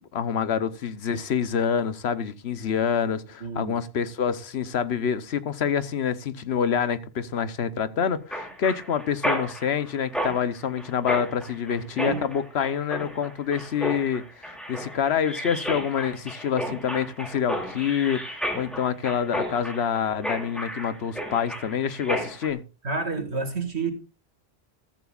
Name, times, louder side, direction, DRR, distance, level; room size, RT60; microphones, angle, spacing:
voice 1, 0.1-22.6, left 7 dB, 85° left, 1.1 m, -27 dB
voice 2, 3.4-3.7 11.9-12.2 22.8-23.9, right 4 dB, 90° right, 2.6 m, -29 dB
Mechanisms, 8.3-22.5, equal, ahead, 2.9 m, -33 dB
14.0 x 13.5 x 2.5 m
omnidirectional pair, 1.1 m